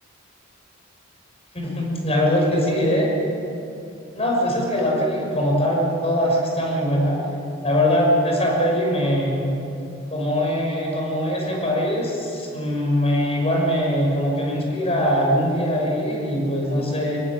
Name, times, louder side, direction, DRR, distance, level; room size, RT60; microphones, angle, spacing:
voice 1, 1.5-3.1 4.1-7.2 7.6-9.5 10.1-17.2, equal, 30° left, -1 dB, 6.2 m, -22 dB
21.5 x 20.5 x 8.8 m, 2.8 s
head